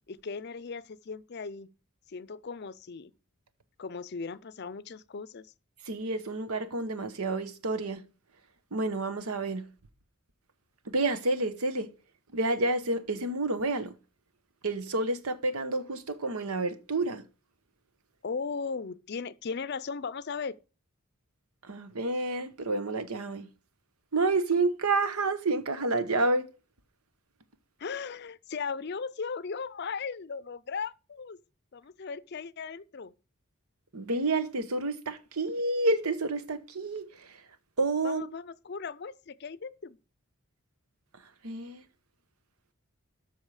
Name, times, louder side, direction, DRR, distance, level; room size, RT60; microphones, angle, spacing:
voice 1, 0.1-1.7 2.1-3.1 3.8-5.5 18.2-20.5 27.8-31.4 31.7-33.1 38.0-40.0, left 5 dB, 50° left, 0.5 m, -37 dB
voice 2, 5.9-8.1 8.7-9.7 10.9-11.9 12.3-13.9 14.6-17.2 21.7-23.5 24.1-26.5 33.9-37.4 37.8-38.2 41.4-41.8, right 2 dB, 90° right, 1.1 m, -29 dB
13.0 x 5.4 x 4.9 m
head